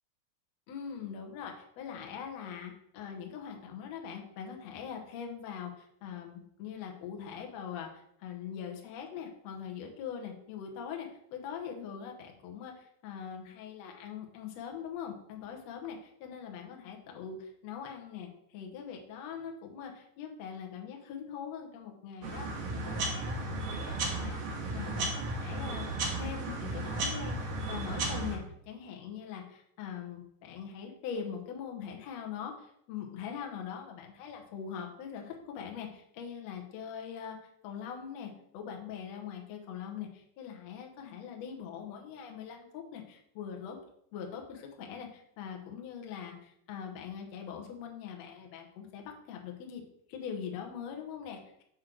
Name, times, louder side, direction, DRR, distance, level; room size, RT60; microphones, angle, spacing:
voice 1, 0.7-25.9 26.1-37.4 37.6-43.8 44.1-49.8 50.1-51.6, left 7 dB, 85° left, 2 dB, 1.5 m, -42 dB
sound 1, 22.2-28.4, right 2 dB, 75° right, 1.4 m, -34 dB
6.2 x 3.8 x 6.1 m, 0.74 s
omnidirectional pair, 4.5 m